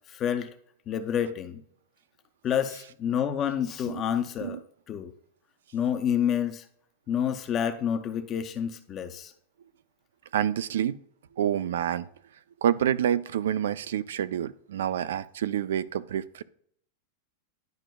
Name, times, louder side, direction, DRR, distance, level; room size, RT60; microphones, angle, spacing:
voice 1, 0.1-0.5 0.9-1.6 2.4-4.6 4.9-5.1 5.7-6.6 7.1-9.3, left 9 dB, 20° left, 0.4 m, -28 dB
voice 2, 10.3-11.0 11.4-12.1 12.6-16.4, right 10 dB, 90° right, 0.4 m, -28 dB
10.5 x 5.0 x 2.2 m
supercardioid pair, 180°, 0 cm